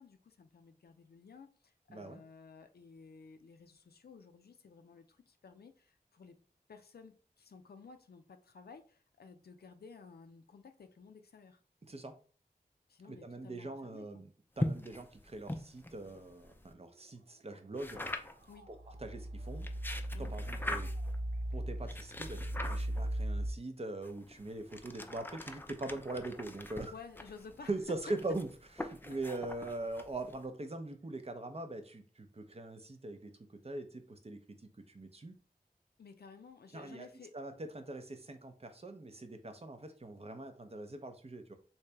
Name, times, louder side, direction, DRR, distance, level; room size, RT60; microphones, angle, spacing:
voice 1, 0.0-6.3 6.7-11.6 12.9-14.2 18.5-18.7 20.1-20.3 26.9-27.7 36.0-37.3, left 5 dB, 90° left, 7 dB, 0.4 m, -54 dB
voice 2, 13.1-14.3 14.6-18.0 18.7-19.7 20.2-20.9 21.5-26.9 27.7-28.5 28.8-34.4 34.9-35.3 36.7-37.1 37.3-41.5, right 2 dB, 40° right, 7 dB, 0.6 m, -42 dB
sound 1, 14.6-16.7 17.8-18.5 19.4-21.2 21.9-23.2 24.0-30.4, left 1 dB, 15° left, 0.4 m, -42 dB
sound 2, 17.9-18.2 18.5-23.5, right 1 dB, 85° right, 0.5 m, -38 dB
3.2 x 2.8 x 3.3 m, 0.40 s
wide cardioid pair, 55°, 16 cm